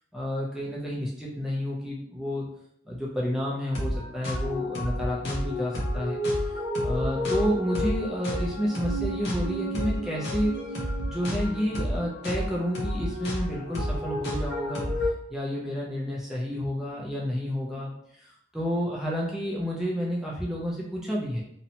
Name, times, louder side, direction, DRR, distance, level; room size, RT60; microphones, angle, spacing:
voice 1, 0.1-2.5 2.9-14.9 15.3-21.4, equal, ahead, -5 dB, 0.3 m, -30 dB
sound 1, 3.7-15.1, left 1 dB, 55° left, 0.6 m, -30 dB
2.7 x 2.0 x 2.8 m, 0.72 s
head